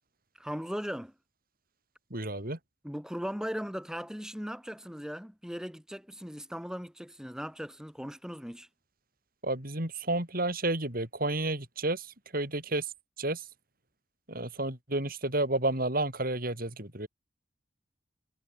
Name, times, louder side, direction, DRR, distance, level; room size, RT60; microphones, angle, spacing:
voice 1, 0.4-1.1 2.8-8.7, equal, 5° right, 6.5 m, -38 dB
voice 2, 2.1-2.6 9.4-12.1 12.3-12.8 13.2-13.4 14.3-17.1, right 2 dB, 50° right, 5.6 m, -31 dB
head